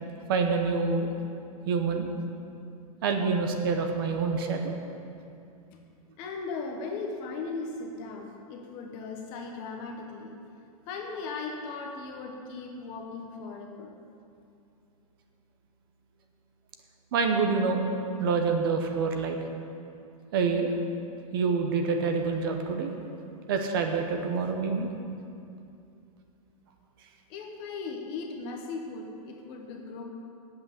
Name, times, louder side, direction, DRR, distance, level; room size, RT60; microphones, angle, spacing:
voice 1, 0.3-1.1 1.7-2.1 3.0-4.7 17.1-17.8 18.2-19.4 20.3-20.7 21.3-22.9 23.5-24.9, right 5 dB, 40° right, 4 dB, 0.9 m, -26 dB
voice 2, 6.2-10.4 10.9-13.9 27.3-30.0, left 4 dB, 25° left, 2 dB, 0.9 m, -37 dB
8.6 x 7.8 x 8.4 m, 2.6 s
supercardioid pair, 175°, 19 cm